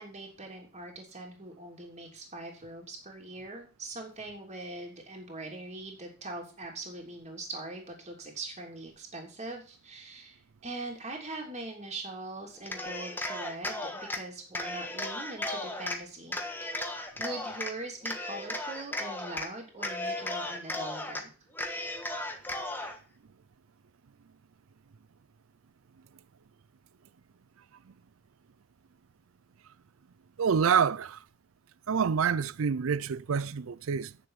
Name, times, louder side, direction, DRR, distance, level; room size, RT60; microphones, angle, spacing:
voice 1, 0.0-16.4 17.2-21.3, right 2 dB, 35° right, 3.1 m, -42 dB
Cheering, 12.6-14.2 14.5-16.0 16.3-17.7 18.0-19.5 19.8-21.2 21.5-23.0, left 1 dB, 10° left, 1.3 m, -35 dB
voice 2, 30.4-31.2 31.9-34.2, right 6 dB, 70° right, 0.5 m, -27 dB
9.3 x 7.0 x 5.8 m
head